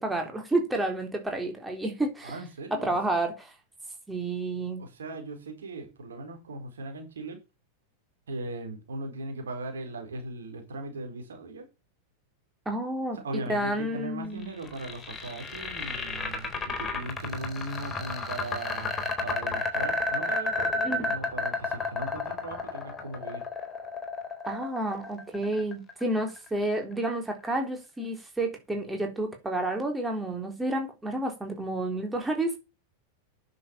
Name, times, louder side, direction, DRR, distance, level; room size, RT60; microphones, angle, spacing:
voice 1, 0.0-2.4 2.7-3.5 4.1-4.8 12.7-14.5 20.8-21.0 24.5-32.6, right 1 dB, 10° right, 3.8 m, -30 dB
voice 2, 2.2-3.0 4.8-7.4 8.3-11.7 13.2-23.4, right 2 dB, 65° right, 4.2 m, -38 dB
sound 1, 14.4-26.5, left 3 dB, 15° left, 4.2 m, -32 dB
10.0 x 7.8 x 7.0 m
figure-of-eight pair, 90°, 0 cm